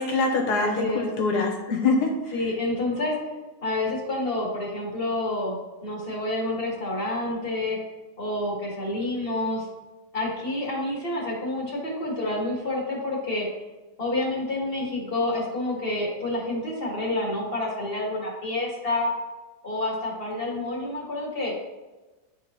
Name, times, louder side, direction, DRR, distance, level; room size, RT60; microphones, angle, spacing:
voice 1, 0.0-2.1, left 3 dB, 85° left, 2 dB, 1.6 m, -24 dB
voice 2, 0.6-1.1 2.3-3.1 3.6-7.8 8.2-9.7 10.1-13.5 14.0-19.1 19.6-21.5, left 2 dB, 35° left, -4 dB, 1.8 m, -28 dB
10.5 x 3.8 x 2.8 m, 1.2 s
omnidirectional pair, 1.7 m